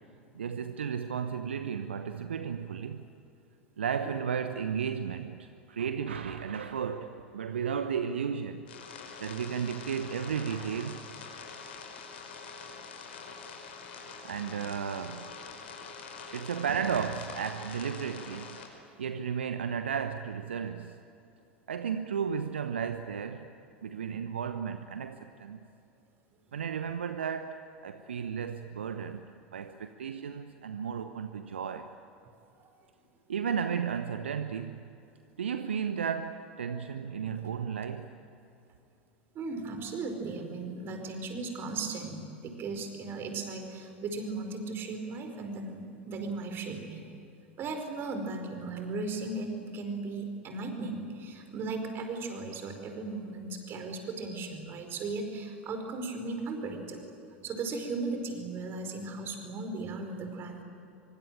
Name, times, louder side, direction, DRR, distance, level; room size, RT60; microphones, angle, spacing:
voice 1, 0.3-3.0 3.8-8.6 9.2-11.0 14.2-15.3 16.3-18.6 19.0-21.0 21.7-23.5 23.8-25.6 26.5-31.9 33.3-34.8 35.4-38.1, right 7 dB, 70° right, 1.0 m, -34 dB
sound 1, 8.7-18.7, left 5 dB, 65° left, 5.6 m, -45 dB
voice 2, 39.3-47.0 47.6-57.1 57.4-60.6, right 3 dB, 35° right, 5.0 m, -37 dB
25.0 x 24.0 x 9.2 m
figure-of-eight pair, 80°, 6 cm